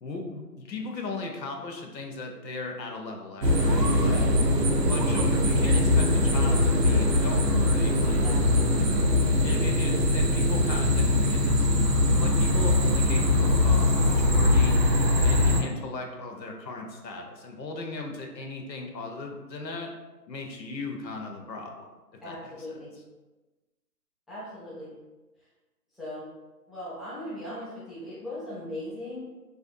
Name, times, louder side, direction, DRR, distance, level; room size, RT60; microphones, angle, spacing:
voice 1, 0.0-4.2 4.8-8.2 8.8-8.9 9.4-14.8 15.2-19.9 20.3-21.7 22.1-22.7, left 3 dB, 90° left, 2 dB, 0.7 m, -37 dB
sound 1, 3.4-15.6, left 1 dB, 80° right, 0.6 m, -22 dB
voice 2, 8.0-8.7 22.2-23.0 24.3-25.0 25.9-26.3 26.7-29.3, left 1 dB, ahead, -9 dB, 0.4 m, -39 dB
2.5 x 2.1 x 2.5 m, 1.1 s
figure-of-eight pair, 175°, 49 cm